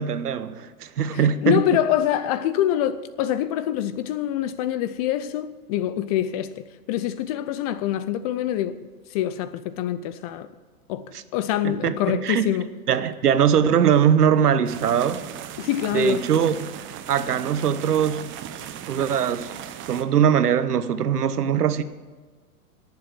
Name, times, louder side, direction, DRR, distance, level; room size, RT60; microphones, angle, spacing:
voice 1, 0.0-1.6 11.6-12.5 12.9-15.3 15.9-16.8 17.1-18.4 18.9-19.5 19.9-21.8, right 8 dB, 85° right, 1.0 m, -21 dB
voice 2, 1.1-10.5 10.9-12.7 15.6-16.2, left 11 dB, 25° left, 0.4 m, -25 dB
sound 1, 14.7-20.0, right 10 dB, 25° right, 0.8 m, -37 dB
19.0 x 7.5 x 6.1 m
hypercardioid pair, 115°, 45 cm